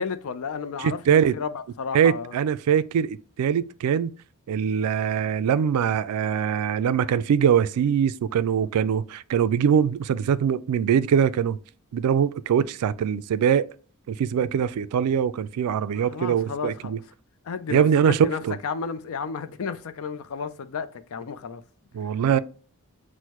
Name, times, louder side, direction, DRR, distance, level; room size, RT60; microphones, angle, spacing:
voice 1, 0.0-2.3 15.9-16.9 17.5-21.6 22.3-22.4, left 5 dB, 65° left, 0.4 m, -32 dB
voice 2, 0.8-1.4 1.9-4.1 4.5-11.6 11.9-13.7 14.1-17.0 17.7-18.6 21.9-22.4, right 8 dB, 85° right, 0.3 m, -22 dB
6.3 x 2.1 x 2.9 m
head